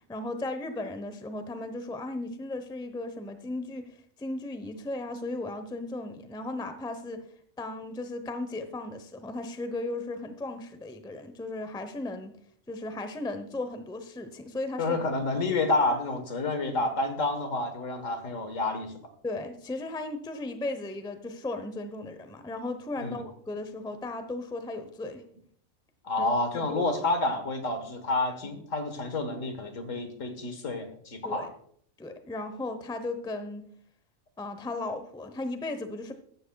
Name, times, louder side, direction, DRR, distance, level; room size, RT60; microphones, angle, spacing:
voice 1, 0.1-3.9 4.2-7.2 7.6-12.3 12.7-15.0 15.4-15.5 19.2-25.2 26.2-26.8 28.5-28.6 31.2-31.5 32.0-33.6 34.4-36.1, left 2 dB, 5° left, 9 dB, 0.6 m, -36 dB
voice 2, 14.8-18.9 23.0-23.2 26.0-31.5, left 2 dB, 65° left, 8 dB, 1.8 m, -29 dB
15.0 x 12.0 x 2.3 m, 0.63 s
omnidirectional pair, 1.4 m